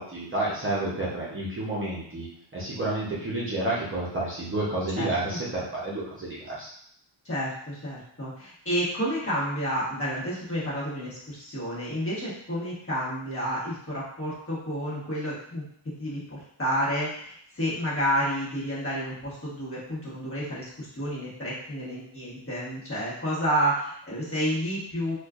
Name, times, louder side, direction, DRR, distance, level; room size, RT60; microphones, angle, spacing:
voice 1, 0.0-2.3 2.5-6.7, right 2 dB, 25° right, -7 dB, 0.8 m, -30 dB
voice 2, 4.9-5.4 7.2-15.7 16.0-25.1, equal, 30° left, -8 dB, 1.3 m, -30 dB
4.3 x 2.4 x 2.4 m, 0.67 s
wide cardioid pair, 135°, 48 cm